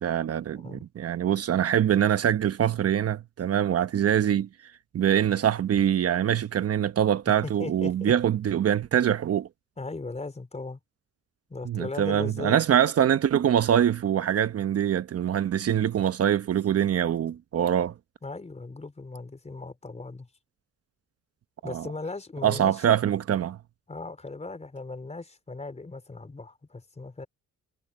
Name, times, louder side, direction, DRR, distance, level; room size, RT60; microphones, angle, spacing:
voice 1, 0.0-4.5 4.9-9.5 11.6-17.9 21.6-21.9 22.4-23.6, right 9 dB, 50° right, 1.0 m, -24 dB
voice 2, 7.3-8.1 9.8-10.8 11.5-12.6 18.2-20.3 21.6-22.8 23.9-27.3, left 3 dB, 20° left, 4.5 m, -38 dB
cardioid pair, 90°, 30 cm